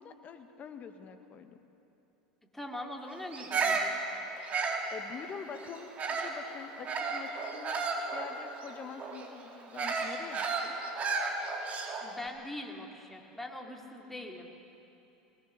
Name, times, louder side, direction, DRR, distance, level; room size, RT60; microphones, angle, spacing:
voice 1, 0.0-1.6 4.9-10.7, left 7 dB, 35° left, 6 dB, 1.7 m, -46 dB
voice 2, 2.5-4.0 12.0-14.5, left 1 dB, 5° left, 1 dB, 2.8 m, -42 dB
Bird vocalization bird call bird song, 3.3-6.4 6.9-12.2, right 4 dB, 35° right, 2.6 m, -33 dB
21.0 x 19.5 x 6.7 m, 2.9 s
hypercardioid pair, 80°, 4 cm